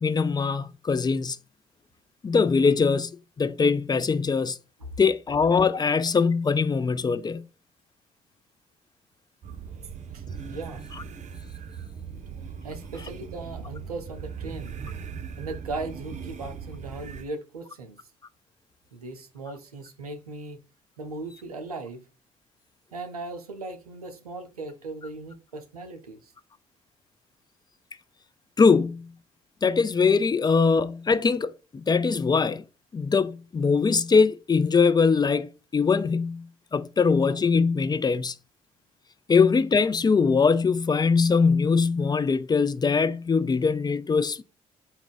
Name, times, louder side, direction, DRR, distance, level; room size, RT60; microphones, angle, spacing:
voice 1, 0.0-1.4 2.2-3.1 3.4-4.6 5.0-7.4 28.6-29.1 29.6-32.6 32.9-36.5 36.7-38.3 39.3-44.4, left 5 dB, 20° left, 0.4 m, -22 dB
sound 1, 9.4-17.2, right 6 dB, 40° right, 0.6 m, -39 dB
voice 2, 10.1-10.8 12.6-14.7 15.4-18.0 18.9-20.6 21.0-22.0 22.9-26.3, right 3 dB, 90° right, 0.5 m, -38 dB
4.0 x 2.3 x 3.8 m
figure-of-eight pair, 45°, 19 cm